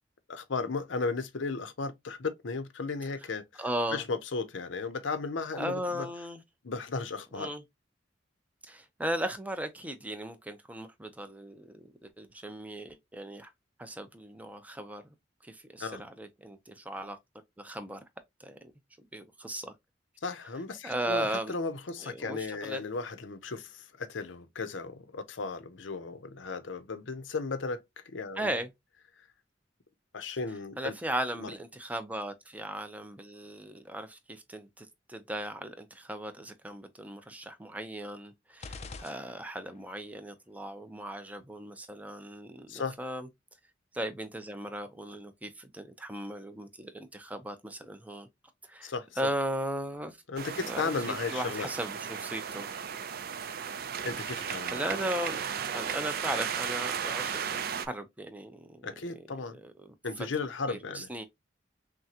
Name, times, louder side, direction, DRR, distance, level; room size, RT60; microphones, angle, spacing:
voice 1, 0.3-3.6 3.9-6.1 6.6-7.5 15.8-16.0 20.2-28.6 30.1-30.9 31.4-31.5 42.7-43.0 48.8-49.1 50.3-51.7 53.5-53.7 54.0-54.8 58.8-59.6 60.0-61.1, left 4 dB, 80° left, 0.7 m, -35 dB
voice 2, 3.6-4.1 5.5-6.4 7.3-7.6 8.7-13.5 13.8-15.0 15.4-17.2 17.6-18.0 18.4-18.7 19.1-19.7 20.8-21.5 22.0-22.8 28.4-28.7 30.8-43.3 43.9-48.3 48.7-50.2 50.6-50.9 51.3-52.7 54.7-55.4 55.7-58.8 59.2-59.9 60.7-61.2, right 1 dB, 10° right, 0.6 m, -37 dB
sound 1, 38.6-39.9, left 4 dB, 35° left, 0.5 m, -45 dB
sound 2, 50.4-57.9, right 7 dB, 55° right, 0.5 m, -35 dB
6.0 x 2.2 x 2.8 m
head